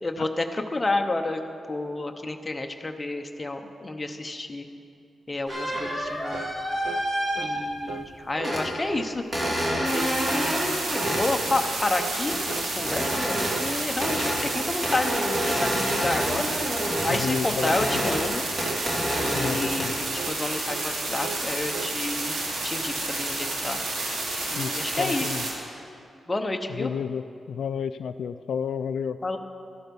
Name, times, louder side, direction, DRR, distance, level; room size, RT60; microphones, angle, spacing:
voice 1, 0.0-1.4 1.7-4.7 5.3-6.4 7.4-9.2 9.8-13.3 13.6-16.4 17.0-18.4 19.1-22.4 22.6-23.8 24.5-25.3 26.3-26.9 29.2-29.4, left 2 dB, 15° left, 5 dB, 0.8 m, -30 dB
sound 1, 5.5-7.9 8.3-8.7 9.3-11.3 12.3-12.4 12.8-13.5 14.0-14.4 14.8-17.2 17.5-18.3 18.6-19.5 19.8-20.2, equal, 20° right, 3.0 m, -28 dB
sound 2, 5.8-6.1 6.3-6.5 6.8-7.1 7.4-7.6 7.9-8.1 8.4-8.6 8.9-9.1 9.4-9.6 9.9-10.2 10.4-10.7 10.9-11.2 11.5-11.7 12.0-12.2 12.5-12.7 13.0-13.2 13.5-13.7 14.0-14.3 14.5-14.8 15.0-15.3 15.6-15.8 16.1-16.3 16.6-16.8 17.1-17.3 17.6-17.9 18.1-18.4 18.6-18.9 19.2-19.4 19.7-19.9 20.2-20.4 20.7-20.9 21.2-21.5 21.7-22.0, right 8 dB, 70° right, 0.4 m, -38 dB
sound 3, 9.8-25.5, right 2 dB, 90° right, 2.5 m, -30 dB
voice 2, 17.1-18.2 19.3-19.9 24.6-25.4 26.7-29.2, left 7 dB, 80° left, 11 dB, 0.3 m, -31 dB
13.0 x 12.0 x 5.4 m, 2.5 s
wide cardioid pair, 145°, 0 cm